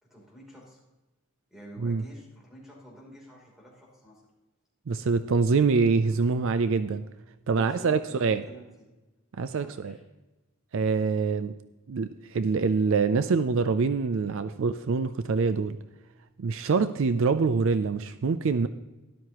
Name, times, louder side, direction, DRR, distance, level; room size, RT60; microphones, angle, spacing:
voice 1, 0.0-0.8 1.5-4.2 7.4-8.9 9.5-10.0, equal, ahead, -3 dB, 3.2 m, -49 dB
voice 2, 4.9-7.0 7.5-8.4 9.3-10.0 10.7-11.5 11.9-15.8 16.4-18.7, right 4 dB, 60° right, 12 dB, 0.4 m, -25 dB
12.5 x 11.5 x 3.0 m, 1.1 s
head